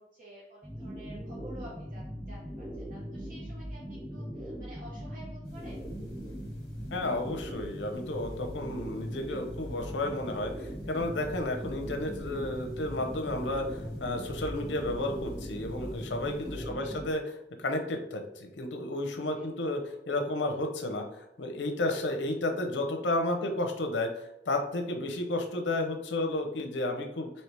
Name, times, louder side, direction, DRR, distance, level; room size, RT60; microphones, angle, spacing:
voice 1, 0.0-5.9 16.4-16.9 19.3-19.9 25.1-25.3, equal, 50° right, -4 dB, 0.7 m, -51 dB
sound 1, 0.6-17.1, equal, 5° right, 0.4 m, -40 dB
sound 2, 5.4-16.7, equal, 55° left, 1.1 m, -49 dB
voice 2, 6.9-27.3, left 2 dB, 80° left, 4 dB, 0.7 m, -32 dB
sound 3, 9.9-14.9, left 1 dB, 85° right, 1.4 m, -49 dB
4.5 x 2.8 x 3.3 m, 0.87 s
head